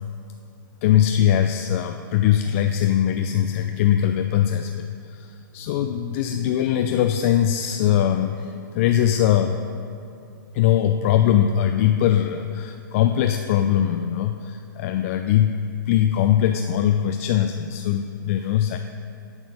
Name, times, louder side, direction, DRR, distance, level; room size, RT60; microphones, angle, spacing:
voice 1, 0.8-9.6 10.5-15.5 15.9-18.8, left 10 dB, 40° left, 6 dB, 0.4 m, -21 dB
9.6 x 5.5 x 5.2 m, 2.6 s
hypercardioid pair, 135°, 11 cm